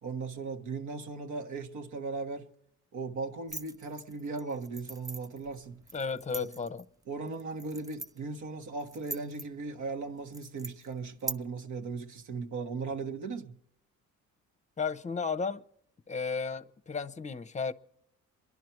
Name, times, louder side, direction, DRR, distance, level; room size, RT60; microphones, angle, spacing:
voice 1, 0.0-2.5 2.9-5.8 6.4-6.5 7.1-13.6, right 4 dB, 75° right, 1.4 m, -37 dB
sound 1, 3.5-11.3, right 2 dB, 10° right, 0.5 m, -44 dB
voice 2, 5.9-6.8 14.8-15.6 16.1-17.7, left 5 dB, 25° left, 0.7 m, -33 dB
27.5 x 11.0 x 4.6 m
cardioid pair, 90°, 30 cm